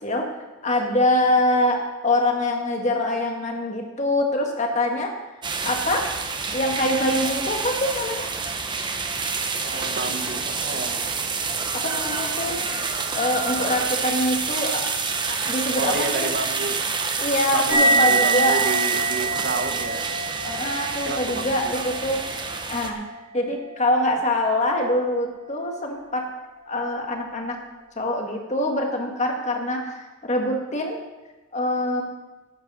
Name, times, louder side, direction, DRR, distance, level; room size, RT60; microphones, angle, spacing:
voice 1, 0.6-5.1 5.6-6.1 6.5-8.3 11.7-12.6 13.1-14.8 15.3-16.3 17.2-18.6 20.4-22.4 22.7-23.0 23.3-26.3 26.7-27.6 28.0-31.0 31.5-32.0, left 1 dB, 35° left, 2 dB, 1.8 m, -24 dB
sound 1, 5.4-22.9, right 4 dB, 20° right, 0.9 m, -28 dB
voice 2, 9.6-11.0 15.8-16.8 17.5-20.0 21.0-21.7, right 3 dB, 50° right, 6 dB, 0.9 m, -30 dB
sound 2, 17.7-24.6, right 3 dB, 80° right, 4.1 m, -26 dB
12.0 x 8.8 x 6.2 m, 1.1 s
head